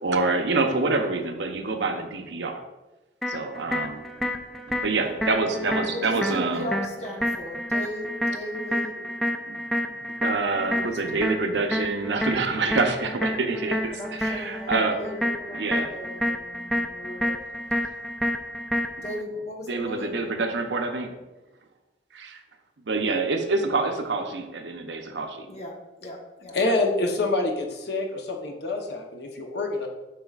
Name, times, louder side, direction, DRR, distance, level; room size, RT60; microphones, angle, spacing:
voice 1, 0.0-2.6 3.3-4.0 4.7-6.7 9.0-9.1 9.5-9.6 10.2-15.0 15.5-15.9 17.8-17.9 19.7-21.1 22.1-22.4 22.9-25.5, right 3 dB, 80° right, 5 dB, 0.7 m, -26 dB
sound 1, 3.2-19.2, equal, ahead, 0.3 m, -29 dB
voice 2, 5.9-8.9 10.8-11.0 13.7-17.3 19.0-20.2 25.5-25.7 26.0-26.6, left 1 dB, 35° left, -1 dB, 1.1 m, -37 dB
voice 3, 26.5-29.9, left 2 dB, 65° left, 2 dB, 0.8 m, -26 dB
7.4 x 5.2 x 2.4 m, 1.0 s
head